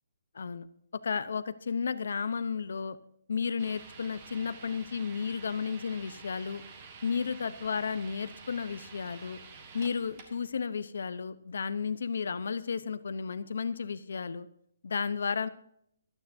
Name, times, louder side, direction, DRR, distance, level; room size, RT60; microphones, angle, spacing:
voice 1, 0.3-0.7 1.0-3.0 3.3-6.6 7.0-9.4 9.7-14.5 14.8-15.5, left 5 dB, 60° left, 14 dB, 0.8 m, -33 dB
sound 1, 3.6-10.5, right 5 dB, 25° right, 1.5 m, -50 dB
24.5 x 9.3 x 2.7 m, 0.70 s
hypercardioid pair, 180°, 0 cm